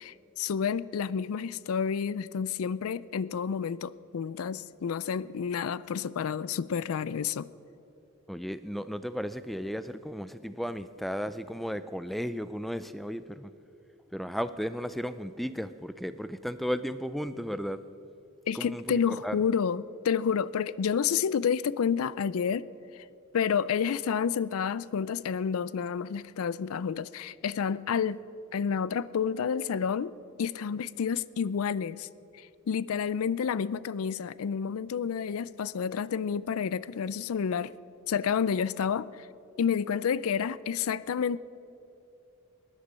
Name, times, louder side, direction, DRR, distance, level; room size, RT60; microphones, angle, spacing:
voice 1, 0.0-7.5 18.5-22.7 22.9-23.0 23.3-28.2 28.5-30.1 30.4-32.1 32.3-37.7 38.1-39.3 39.6-41.4, left 7 dB, 70° left, 19 dB, 0.4 m, -30 dB
voice 2, 8.3-13.5 14.1-17.8 18.5-19.4, equal, ahead, 13 dB, 0.3 m, -34 dB
19.0 x 10.5 x 5.5 m, 2.9 s
head